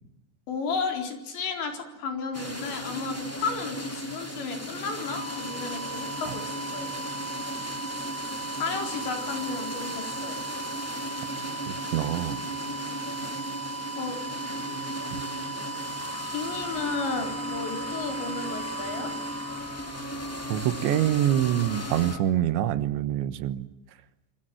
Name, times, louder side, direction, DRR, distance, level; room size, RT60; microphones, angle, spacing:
voice 1, 0.5-7.0 8.5-10.4 14.0-14.2 16.3-19.1, left 4 dB, 70° left, 5 dB, 6.4 m, -33 dB
sound 1, 2.3-22.2, equal, 5° left, 1.1 m, -36 dB
sound 2, 4.8-20.6, right 4 dB, 25° right, 3.5 m, -38 dB
voice 2, 11.9-12.4 15.1-15.2 20.5-23.7, right 12 dB, 75° right, 13 dB, 3.5 m, -25 dB
sound 3, 16.0-22.2, left 5 dB, 40° left, 2.3 m, -44 dB
27.0 x 26.5 x 7.7 m, 0.90 s
omnidirectional pair, 5.4 m